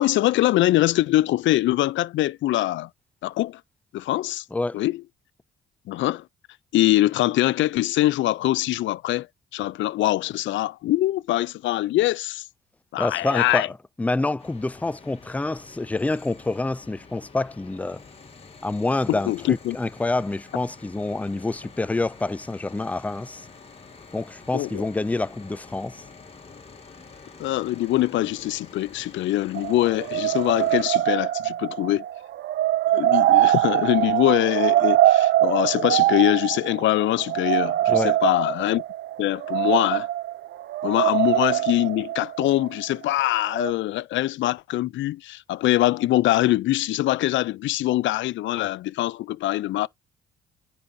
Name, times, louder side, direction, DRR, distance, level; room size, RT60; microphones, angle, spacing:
voice 1, 0.0-2.9 3.2-3.6 3.9-4.4 4.7-5.0 5.9-6.2 6.7-9.3 9.5-12.4 12.9-13.7 19.1-19.8 24.5-24.9 27.4-32.0 32.9-38.8 39.2-40.1 40.8-49.9, left 15 dB, 75° left, 0.4 m, -23 dB
voice 2, 4.5-4.8 13.0-13.7 14.0-18.0 18.6-23.4 24.1-26.0 37.9-38.2, left 2 dB, 5° left, 0.3 m, -27 dB
sound 1, 14.4-30.9, left 4 dB, 30° left, 2.3 m, -47 dB
sound 2, 29.5-43.1 43.5-43.7, right 14 dB, 65° right, 0.5 m, -23 dB
10.0 x 4.2 x 2.7 m
cardioid pair, 90°, 20 cm